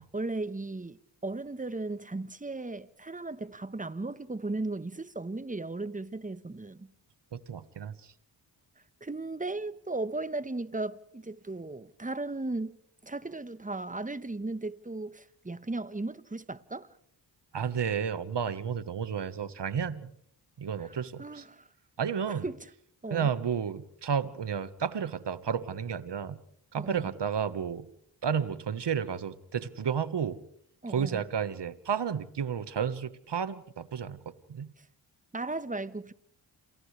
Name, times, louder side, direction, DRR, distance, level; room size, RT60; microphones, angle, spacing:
voice 1, 0.0-6.9 9.0-12.7 13.0-16.9 20.8-21.7 22.3-22.6 23.0-23.3 26.8-27.1 30.8-31.2 34.8-34.9 35.3-36.1, right 2 dB, 15° right, 1.2 m, -36 dB
voice 2, 7.3-7.9 17.5-20.1 20.6-21.4 22.0-22.4 23.1-26.4 26.7-27.9 28.2-30.4 30.9-34.7, right 7 dB, 55° right, 1.5 m, -32 dB
30.0 x 28.0 x 3.4 m
supercardioid pair, 40°, 50 cm